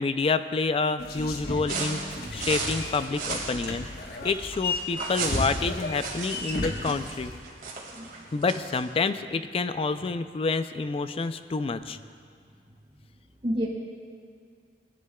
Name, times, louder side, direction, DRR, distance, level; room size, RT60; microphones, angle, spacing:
voice 1, 0.0-2.0 2.3-3.9 4.2-7.3 8.3-12.0, left 4 dB, 35° left, 11 dB, 0.4 m, -28 dB
sound 1, 1.0-7.4, left 2 dB, 60° left, 1.1 m, -34 dB
sound 2, 1.7-8.9, right 4 dB, 55° right, 2.1 m, -35 dB
voice 2, 7.9-8.4 13.4-13.7, equal, 35° right, -3 dB, 1.9 m, -30 dB
18.5 x 10.5 x 2.3 m, 2.2 s
head